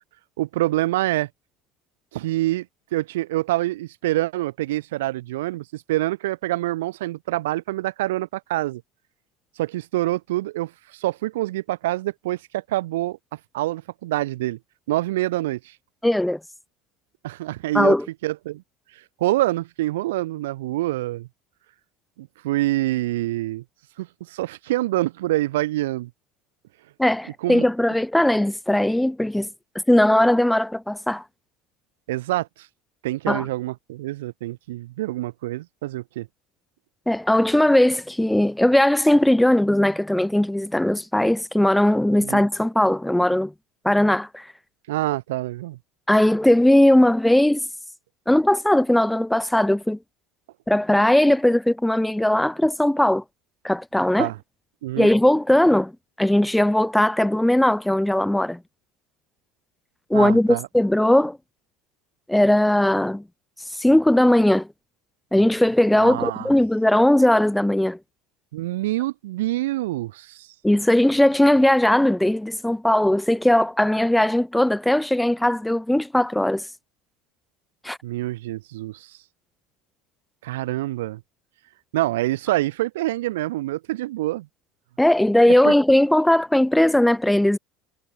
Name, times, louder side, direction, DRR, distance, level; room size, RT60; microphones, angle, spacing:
voice 1, 0.4-1.3 2.1-2.7 2.9-8.8 9.6-13.2 13.5-14.6 14.9-15.7 17.2-17.9 18.2-18.6 19.2-21.3 22.2-23.6 24.0-26.1 27.4-27.7 32.1-32.5 33.0-36.3 42.2-42.4 44.9-45.8 54.2-54.4 54.8-55.1 60.1-60.7 66.0-66.5 68.5-70.5 78.0-79.1 80.4-81.2 81.9-84.5 85.6-85.7, right 17 dB, 85° right, 1.2 m, -26 dB
voice 2, 16.0-16.4 17.7-18.1 27.0-29.5 29.9-31.2 33.3-33.5 37.1-43.5 43.8-44.5 46.1-47.6 48.3-50.0 50.7-53.2 53.6-54.3 55.0-55.9 56.2-58.6 60.1-61.4 62.3-63.2 63.7-64.7 65.3-68.0 70.6-76.6 77.8-78.0 85.0-87.6, left 1 dB, 5° left, 0.4 m, -19 dB
supercardioid pair, 95°, 0 cm